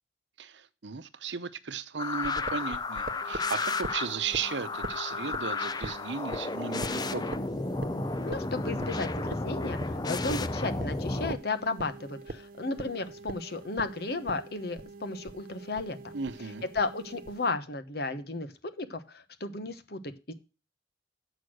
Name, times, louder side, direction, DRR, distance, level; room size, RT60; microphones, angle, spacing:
voice 1, 0.4-7.4 16.1-16.6, right 6 dB, 80° right, 0.8 m, -35 dB
sound 1, 2.0-11.3, left 3 dB, 25° left, 0.5 m, -33 dB
sound 2, 2.2-17.5, right 2 dB, 50° right, 0.7 m, -44 dB
voice 2, 8.2-16.1 16.7-18.5 18.8-20.3, left 3 dB, 60° left, 1.1 m, -34 dB
8.0 x 6.3 x 6.3 m
head